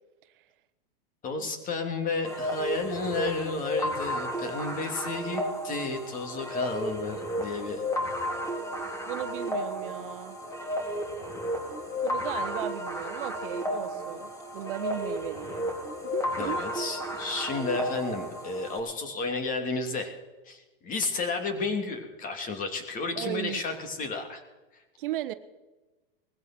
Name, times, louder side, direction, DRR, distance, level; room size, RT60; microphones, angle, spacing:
voice 1, 1.2-7.8 16.4-20.1 20.5-24.4, left 3 dB, 25° left, 5 dB, 3.1 m, -32 dB
sound 1, 2.2-18.8, equal, 10° left, 3.4 m, -33 dB
voice 2, 9.1-10.4 12.0-15.7 16.0-16.6 23.2-23.6 25.0-25.3, right 14 dB, 60° right, 12 dB, 1.2 m, -36 dB
20.0 x 15.5 x 4.5 m, 1.1 s
hypercardioid pair, 125°, 30 cm